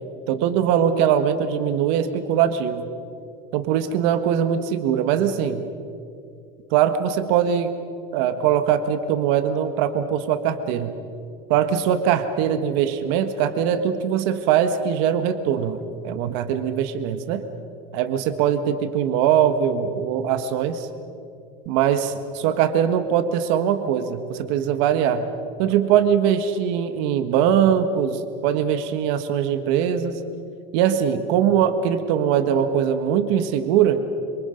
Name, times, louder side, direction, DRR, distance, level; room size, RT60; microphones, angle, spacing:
voice 1, 0.3-2.9 3.5-5.7 6.7-7.7 8.1-10.9 11.5-17.4 17.9-20.9 21.7-25.3 25.6-30.2 30.7-34.0, right 9 dB, 65° right, 9 dB, 1.5 m, -21 dB
27.0 x 26.0 x 5.3 m, 2.5 s
supercardioid pair, 135°, 17 cm